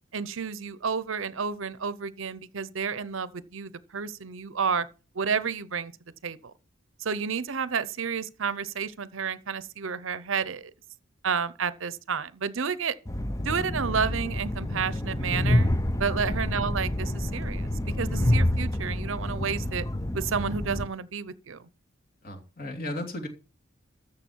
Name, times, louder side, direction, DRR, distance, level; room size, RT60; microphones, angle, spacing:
voice 1, 0.1-4.9 5.1-5.9 6.2-6.4 7.0-10.7 11.2-13.0 13.4-15.7 16.0-17.7 18.0-19.9 20.1-21.7, right 6 dB, 65° right, 0.7 m, -30 dB
Train, 13.1-20.9, left 1 dB, 15° left, 0.6 m, -28 dB
voice 2, 22.2-23.3, left 1 dB, 45° left, 2.6 m, -35 dB
13.5 x 7.5 x 4.6 m
head